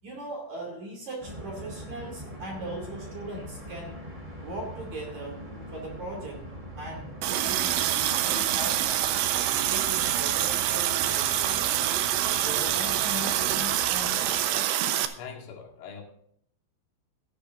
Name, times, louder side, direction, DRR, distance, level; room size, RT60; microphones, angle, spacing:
voice 1, 0.0-4.0 4.4-5.5 5.7-11.6 12.3-14.6, right 1 dB, 45° right, 0 dB, 3.2 m, -39 dB
sound 1, 1.2-14.6, right 1 dB, 15° right, 2.2 m, -43 dB
sound 2, 5.1-8.3, left 1 dB, 40° left, 4.8 m, -52 dB
Water tap faucet, 7.2-15.1, right 12 dB, 75° right, 2.7 m, -26 dB
voice 2, 15.2-16.0, left 6 dB, 80° left, 1 dB, 4.6 m, -42 dB
15.5 x 12.0 x 2.6 m, 0.68 s
omnidirectional pair, 5.8 m